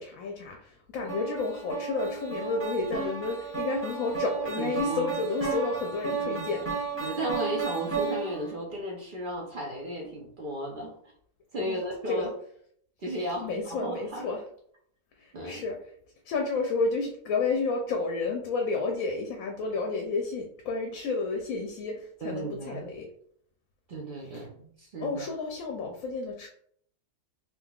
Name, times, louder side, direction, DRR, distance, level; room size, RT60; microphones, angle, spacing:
voice 1, 0.0-6.6 11.6-11.8 12.1-12.3 13.4-14.4 15.2-15.8 16.2-23.1 24.3-24.4 25.0-26.5, left 3 dB, 70° left, 2 dB, 0.9 m, -31 dB
sound 1, 1.1-8.5, right 5 dB, 10° right, 0.9 m, -33 dB
voice 2, 4.6-5.1 6.2-6.5 7.0-10.9 11.5-12.3 13.0-14.3 15.3-15.6 22.2-22.9 23.9-25.2, right 1 dB, 60° right, -1 dB, 0.5 m, -34 dB
3.7 x 2.8 x 2.3 m, 0.64 s
omnidirectional pair, 1.6 m